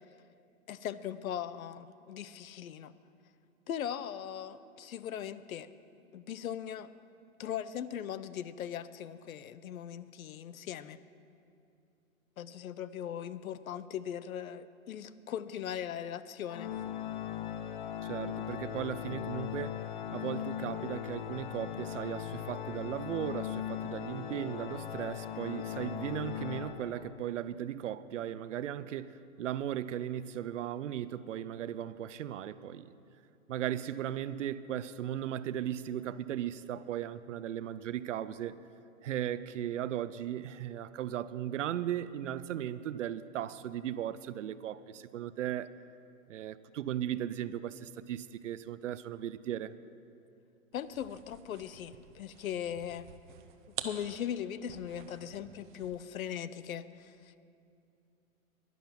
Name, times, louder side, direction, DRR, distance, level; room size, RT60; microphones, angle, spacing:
voice 1, 0.7-2.9 3.7-5.7 6.1-6.9 7.4-11.0 12.4-16.8 50.7-53.1 53.8-57.4, left 9 dB, 80° left, 15 dB, 0.7 m, -39 dB
Organ, 16.5-27.3, left 10 dB, 35° left, 0.5 m, -39 dB
voice 2, 18.0-19.8 20.1-32.9 33.5-38.5 39.0-45.7 46.3-49.7, right 11 dB, 60° right, 15 dB, 0.6 m, -37 dB
sound 1, 50.7-56.1, right 9 dB, 35° right, 0.8 m, -48 dB
11.0 x 11.0 x 5.9 m, 2.6 s
hypercardioid pair, 145°, 42 cm